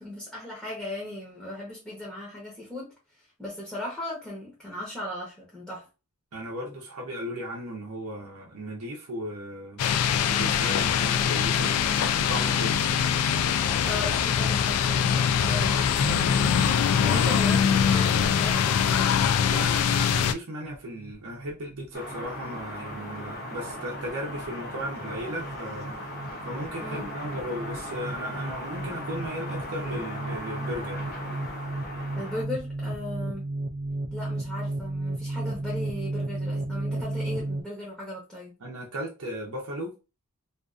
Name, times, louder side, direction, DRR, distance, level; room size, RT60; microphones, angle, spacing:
voice 1, 0.0-2.9 3.4-5.9 13.8-16.3 17.0-19.2 26.8-27.1 32.1-33.5 34.1-38.6, left 1 dB, ahead, 0.7 m, -37 dB
voice 2, 6.3-9.8 10.3-12.0 12.3-13.1 17.1-17.3 19.5-26.0 26.4-31.1 38.6-39.9, equal, 85° right, 0.7 m, -36 dB
sound 1, 9.8-20.3, left 7 dB, 85° left, 0.3 m, -23 dB
sound 2, 20.6-37.6, right 2 dB, 35° right, 0.3 m, -34 dB
sound 3, 21.9-32.4, left 1 dB, 45° left, 0.6 m, -38 dB
2.5 x 2.4 x 2.3 m
head